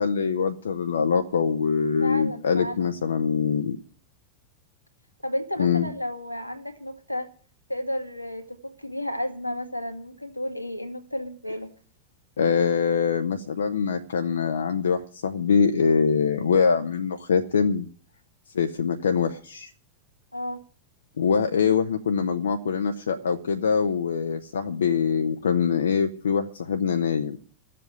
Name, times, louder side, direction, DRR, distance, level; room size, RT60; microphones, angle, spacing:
voice 1, 0.0-3.8 5.6-5.9 12.4-17.8 18.5-19.7 21.2-27.4, left 6 dB, 70° left, 8 dB, 0.9 m, -23 dB
voice 2, 2.0-2.9 5.2-7.3 7.7-11.7 20.3-20.6, left 1 dB, 90° left, 6 dB, 1.9 m, -32 dB
14.0 x 7.7 x 9.0 m, 0.43 s
figure-of-eight pair, 90°, 0 cm